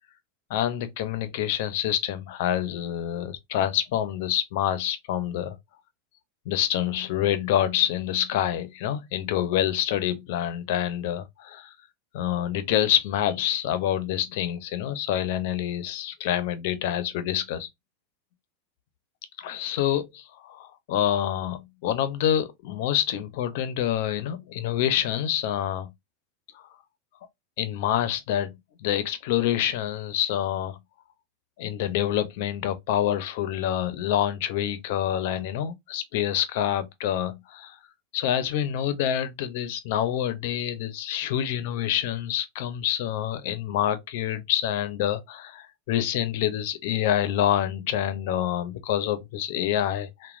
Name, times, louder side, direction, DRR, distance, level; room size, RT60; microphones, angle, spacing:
voice 1, 0.5-5.6 6.5-11.7 12.1-17.7 19.4-25.9 27.6-30.8 31.6-37.8 38.1-50.4, left 11 dB, 65° left, 0.5 m, -27 dB
2.9 x 2.1 x 2.3 m
supercardioid pair, 140°, 0 cm